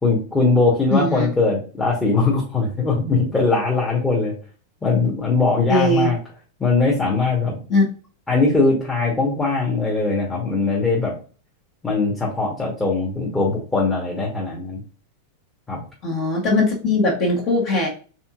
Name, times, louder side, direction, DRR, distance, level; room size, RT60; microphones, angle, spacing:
voice 1, 0.0-4.3 4.8-6.2 6.6-7.6 8.3-11.1 11.8-14.8 15.7-15.8, left 3 dB, 15° left, -4 dB, 1.2 m, -20 dB
voice 2, 0.9-1.3 5.7-6.1 7.7-7.8 16.0-17.9, left 2 dB, 40° left, -1 dB, 1.3 m, -19 dB
4.3 x 3.5 x 2.4 m, 0.38 s
figure-of-eight pair, 90°, 0 cm